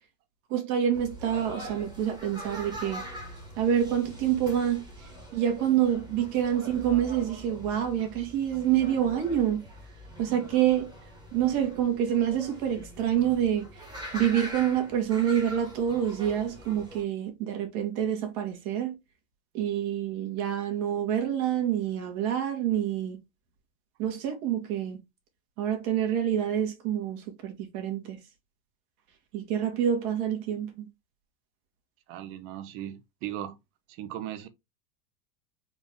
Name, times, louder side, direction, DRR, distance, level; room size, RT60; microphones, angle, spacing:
voice 1, 0.5-3.0 3.6-4.8 5.3-9.6 10.2-10.9 11.3-13.7 14.1-18.9 19.5-23.2 24.0-25.0 25.6-28.2 29.3-30.9, right 9 dB, 60° right, 1.5 m, -27 dB
sound 1, 0.9-17.0, equal, 10° right, 1.1 m, -43 dB
voice 2, 32.1-33.6 33.9-34.5, right 11 dB, 30° right, 0.3 m, -37 dB
3.8 x 2.5 x 3.3 m
supercardioid pair, 130°, 50 cm